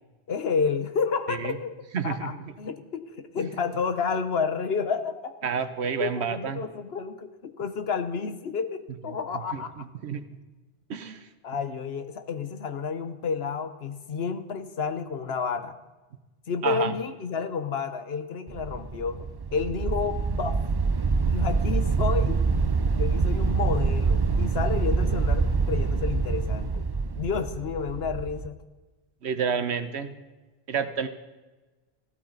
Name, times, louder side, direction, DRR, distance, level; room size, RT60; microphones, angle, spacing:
voice 1, 0.3-1.7 2.0-5.4 6.0-9.9 11.4-15.8 16.5-20.6 21.2-22.4 22.9-26.8 27.2-28.6, left 5 dB, 65° left, 10 dB, 1.1 m, -30 dB
voice 2, 1.9-2.4 5.4-6.6 9.5-10.2 10.9-11.3 16.6-16.9 29.2-30.1 30.7-31.1, right 6 dB, 70° right, 10 dB, 1.2 m, -29 dB
sound 1, 18.5-28.5, right 4 dB, 40° right, 0.3 m, -25 dB
14.5 x 13.0 x 3.9 m, 1.2 s
omnidirectional pair, 1.1 m